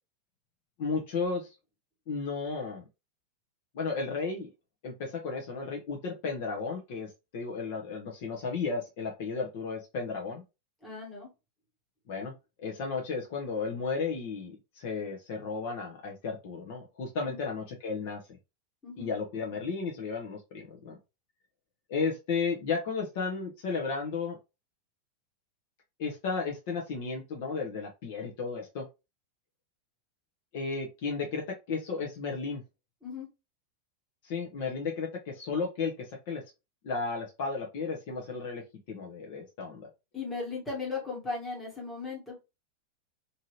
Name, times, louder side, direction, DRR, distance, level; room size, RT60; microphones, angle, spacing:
voice 1, 0.8-1.5 2.1-2.8 3.7-4.5 4.8-10.4 12.1-12.3 12.6-18.2 19.0-21.0 21.9-24.4 26.0-28.9 30.5-32.6 34.2-36.4 36.8-38.6 38.9-39.9, left 4 dB, 45° left, 0 dB, 0.7 m, -34 dB
voice 2, 10.8-11.3 17.2-17.4 18.8-19.1 33.0-33.3 40.1-42.4, left 4 dB, 5° left, -5 dB, 1.3 m, -37 dB
2.7 x 2.6 x 3.0 m, 0.25 s
supercardioid pair, 180°, 0 cm